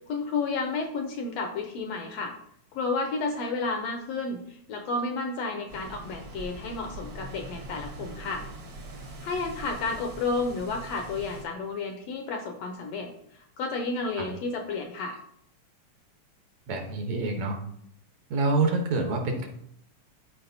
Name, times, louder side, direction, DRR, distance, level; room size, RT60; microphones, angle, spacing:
voice 1, 0.1-2.4 2.7-8.5 9.2-15.2, left 3 dB, 75° left, 5 dB, 1.6 m, -31 dB
sound 1, 5.7-11.5, right 1 dB, 50° right, 1.2 m, -42 dB
voice 2, 16.7-17.6 18.3-19.5, right 3 dB, 70° right, 2 dB, 2.2 m, -27 dB
12.5 x 4.7 x 2.7 m, 0.69 s
omnidirectional pair, 3.4 m